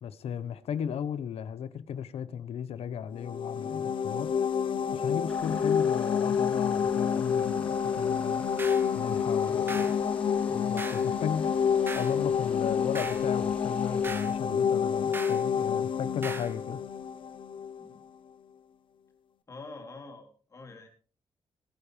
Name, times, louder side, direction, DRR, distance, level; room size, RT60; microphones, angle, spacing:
voice 1, 0.0-4.3 4.9-8.5 8.9-9.9 10.5-11.6 11.9-16.8, left 8 dB, 80° left, 1.1 m, -35 dB
sound 1, 3.2-17.8, left 7 dB, 55° left, 0.8 m, -28 dB
sound 2, 5.3-14.2, left 2 dB, 10° left, 2.4 m, -49 dB
sound 3, 8.6-8.9 9.7-10.0 10.8-11.1 11.9-12.2 12.9-13.3 14.0-14.4 15.1-15.4 16.2-16.5, right 3 dB, 20° right, 1.0 m, -39 dB
voice 2, 9.4-9.9 17.8-18.0 19.5-20.9, left 3 dB, 30° left, 3.3 m, -46 dB
19.5 x 10.5 x 3.4 m
wide cardioid pair, 160°, 10 cm